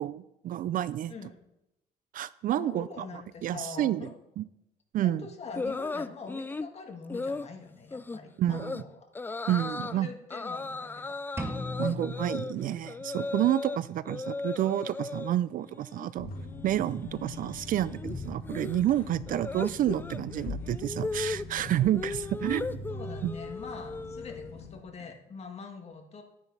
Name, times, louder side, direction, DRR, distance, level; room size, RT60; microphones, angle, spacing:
voice 1, 0.0-1.1 2.1-4.1 4.4-4.5 4.9-5.3 8.4-8.8 9.5-10.1 11.8-16.3 16.6-22.8 23.2-23.3, right 12 dB, 55° right, 18 dB, 0.4 m, -29 dB
voice 2, 1.1-1.5 2.6-4.1 5.0-9.1 9.8-11.2 11.9-12.2 17.3-17.4 19.0-19.1 22.9-26.2, left 4 dB, 40° left, 4 dB, 1.8 m, -44 dB
sound 1, 5.5-6.7 7.1-7.5 7.9-8.2 8.5-8.8 9.1-9.9 10.3-13.8 14.0-15.3 15.7-16.1 16.3-24.5, left 3 dB, 10° left, 0.3 m, -37 dB
sound 2, 11.4-13.3, left 1 dB, 15° right, 1.4 m, -38 dB
sound 3, 16.2-24.8, left 3 dB, 60° left, 1.8 m, -42 dB
12.0 x 9.6 x 4.1 m, 0.87 s
cardioid pair, 110°, 17 cm